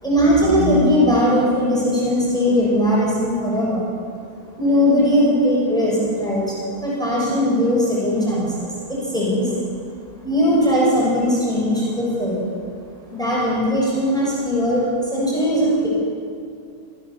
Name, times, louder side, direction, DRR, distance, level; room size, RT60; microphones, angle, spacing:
voice 1, 0.0-3.8 4.6-6.5 6.8-9.5 10.2-12.5 13.1-15.9, equal, ahead, -5 dB, 6.3 m, -19 dB
27.5 x 14.5 x 7.1 m, 2.3 s
omnidirectional pair, 1.7 m